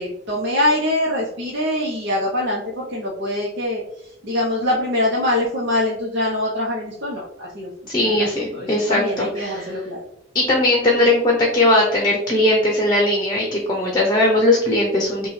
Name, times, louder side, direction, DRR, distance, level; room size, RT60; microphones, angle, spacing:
voice 1, 0.0-10.0, left 1 dB, 60° right, -5 dB, 0.9 m, -24 dB
voice 2, 7.9-9.6 10.3-15.3, left 1 dB, 20° left, -1 dB, 0.7 m, -19 dB
5.5 x 2.3 x 3.2 m, 0.77 s
head